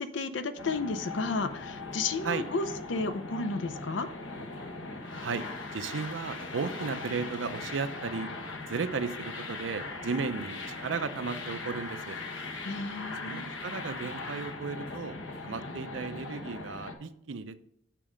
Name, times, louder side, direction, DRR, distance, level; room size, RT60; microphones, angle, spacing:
voice 1, 0.0-4.1 12.6-13.5, left 3 dB, 70° left, 11 dB, 0.6 m, -32 dB
sound 1, 0.6-16.9, left 3 dB, 90° left, 1.0 m, -40 dB
voice 2, 5.7-8.3 8.7-12.2 13.2-15.2 15.4-17.6, right 5 dB, 75° right, 12 dB, 0.6 m, -35 dB
7.5 x 4.9 x 5.0 m, 0.74 s
head